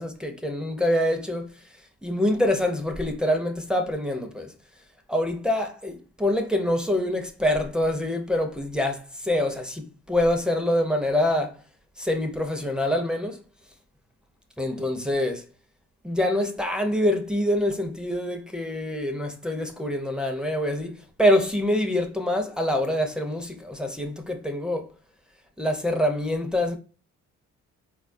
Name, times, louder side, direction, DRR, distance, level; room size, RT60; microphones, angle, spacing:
voice 1, 0.0-1.5 2.0-4.5 5.1-11.6 12.0-13.4 14.6-15.4 16.0-24.9 25.6-26.8, left 1 dB, 5° right, 0.5 m, -25 dB
4.0 x 2.3 x 2.5 m
cardioid pair, 90°, 30 cm